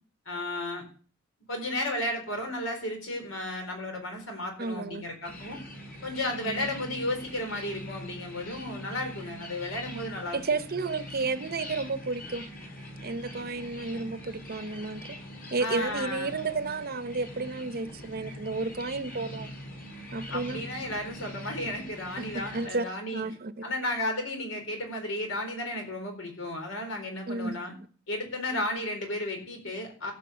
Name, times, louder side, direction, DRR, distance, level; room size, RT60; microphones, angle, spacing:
voice 1, 0.3-0.8 1.5-5.6 6.0-10.4 15.6-16.4 20.3-23.2 23.6-27.7 28.1-30.1, left 1 dB, 85° left, 4.2 m, -33 dB
voice 2, 4.6-5.0 6.4-6.7 10.3-12.5 13.0-15.2 15.5-19.5 20.1-20.6 22.2-22.8 23.1-23.6 27.3-27.8, right 3 dB, 50° right, 0.8 m, -32 dB
sound 1, 5.2-22.7, equal, 50° left, 4.5 m, -43 dB
15.5 x 5.7 x 6.9 m
head